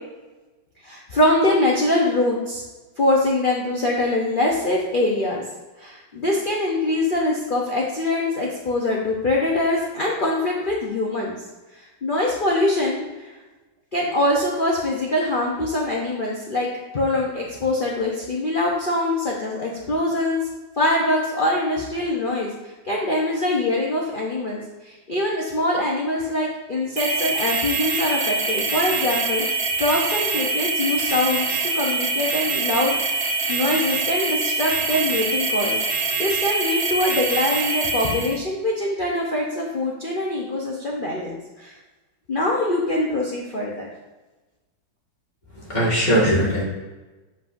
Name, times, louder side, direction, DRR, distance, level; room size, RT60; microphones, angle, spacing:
voice 1, 0.8-2.6 3.0-5.4 5.8-11.3 11.8-13.3 13.9-16.7 16.9-20.4 20.8-22.5 22.9-41.7 42.3-43.9, left 1 dB, 65° left, -3 dB, 0.5 m, -23 dB
sound 1, 27.0-38.4, right 4 dB, 85° right, 0.5 m, -24 dB
voice 2, 45.6-46.6, equal, 25° left, -6 dB, 1.7 m, -20 dB
7.4 x 5.5 x 2.5 m, 1.2 s
omnidirectional pair, 2.1 m